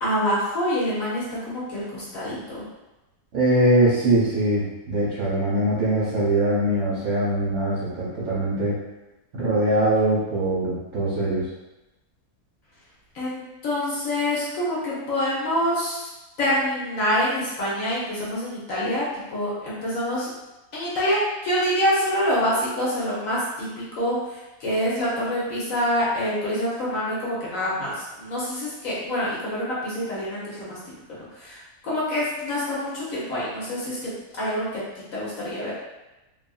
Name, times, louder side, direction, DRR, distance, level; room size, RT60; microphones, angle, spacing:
voice 1, 0.0-2.6 13.1-16.1 16.4-20.3 20.7-30.8 31.1-34.1 34.4-35.7, equal, 60° left, -7 dB, 1.2 m, -26 dB
voice 2, 3.3-8.8 9.3-11.5, right 1 dB, 65° right, -8 dB, 1.0 m, -22 dB
2.7 x 2.5 x 2.3 m, 1.0 s
omnidirectional pair, 1.7 m